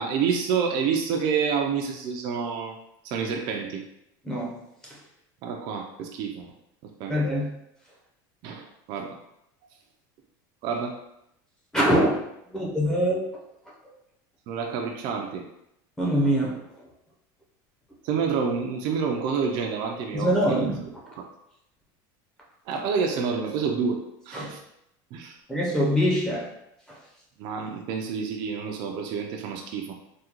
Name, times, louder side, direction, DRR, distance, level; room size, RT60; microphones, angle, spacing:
voice 1, 0.0-2.8 3.0-3.8 5.4-6.5 6.8-7.2 8.4-9.2 10.6-11.0 14.5-15.4 18.0-20.7 21.0-21.1 22.7-24.6 25.1-25.4 27.4-29.9, right 6 dB, 45° right, 2 dB, 0.4 m, -28 dB
voice 2, 7.1-7.5 11.7-12.2 12.5-13.2 16.0-16.6 20.1-20.8 24.3-24.5 25.5-26.5, equal, 5° left, -5 dB, 0.6 m, -23 dB
3.6 x 2.2 x 2.9 m, 0.81 s
supercardioid pair, 155°, 11 cm